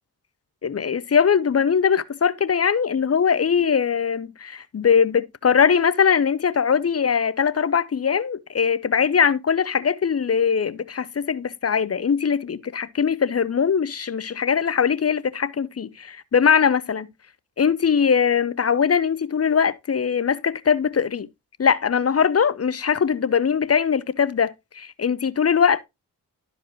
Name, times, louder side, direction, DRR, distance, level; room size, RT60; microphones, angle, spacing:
voice 1, 0.6-17.1 17.6-21.3 21.6-25.9, left 7 dB, 35° left, 0.7 m, -21 dB
12.0 x 5.0 x 3.0 m
supercardioid pair, 45°, 42 cm